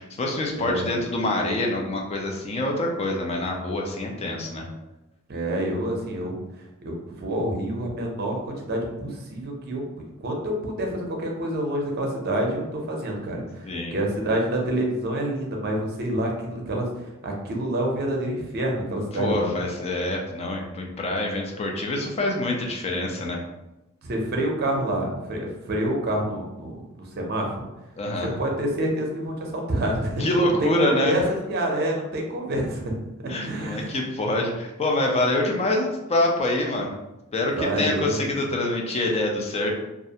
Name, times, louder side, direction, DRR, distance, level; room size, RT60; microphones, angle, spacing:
voice 1, 0.0-4.7 13.6-14.0 19.1-23.4 28.0-28.3 30.2-31.2 33.3-36.9 37.3-39.7, left 1 dB, 30° left, 1 dB, 0.4 m, -25 dB
voice 2, 0.6-1.0 5.3-6.3 6.8-16.9 17.2-19.7 24.0-27.7 28.2-30.2 30.6-33.0 33.4-34.0 37.6-38.4, right 1 dB, 50° right, 0 dB, 0.6 m, -27 dB
2.4 x 2.1 x 2.7 m, 0.99 s
head